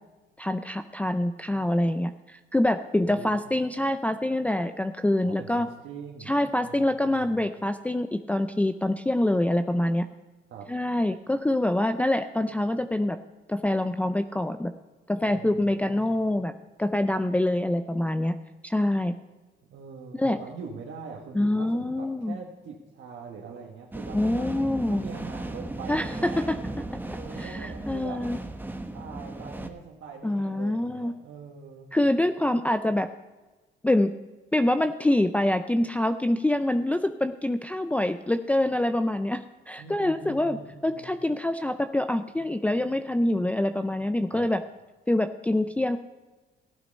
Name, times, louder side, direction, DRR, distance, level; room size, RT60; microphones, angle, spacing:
voice 1, 0.4-5.7 6.3-10.1 10.7-13.2 13.5-14.7 15.1-16.5 16.8-18.3 18.6-19.1 20.1-20.4 21.3-22.4 24.1-25.0 25.9-26.6 27.4-28.4 30.2-31.1 31.9-33.1 33.8-34.1 34.5-40.6 40.8-44.6 45.1-46.0, left 1 dB, 5° left, 6 dB, 0.5 m, -25 dB
voice 2, 3.0-3.4 5.2-6.3 6.6-7.5 10.5-10.7 15.2-16.2 19.7-24.5 24.9-28.3 28.9-31.9 39.8-41.1 44.3-44.5, right 5 dB, 75° right, -2 dB, 1.5 m, -43 dB
sound 1, 23.9-29.7, right 2 dB, 10° right, 1.0 m, -36 dB
15.0 x 8.6 x 5.3 m, 1.2 s
cardioid pair, 90°, 20 cm